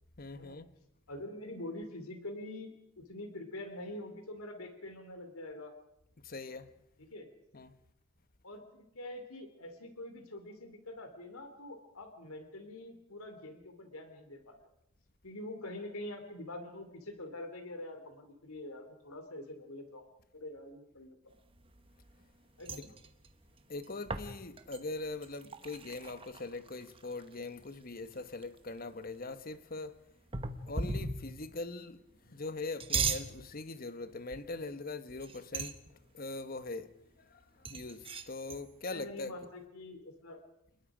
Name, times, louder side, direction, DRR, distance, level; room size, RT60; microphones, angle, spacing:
voice 1, 0.2-0.7 6.2-6.7 7.5-7.8 23.7-30.0 30.7-39.4, left 3 dB, 40° left, 1.1 m, -42 dB
voice 2, 1.1-5.7 7.0-7.3 8.4-14.5 15.2-20.0 20.3-21.3 22.6-22.9 38.8-40.4, left 1 dB, 85° left, 3.3 m, -45 dB
sound 1, 21.5-22.3 22.6-27.5 27.8-27.9 28.1-28.8 30.3-31.5 32.6-33.3 34.3-34.6 35.1-35.9 37.6-38.6, right 4 dB, 25° right, 1.2 m, -38 dB
28.5 x 21.0 x 5.1 m
head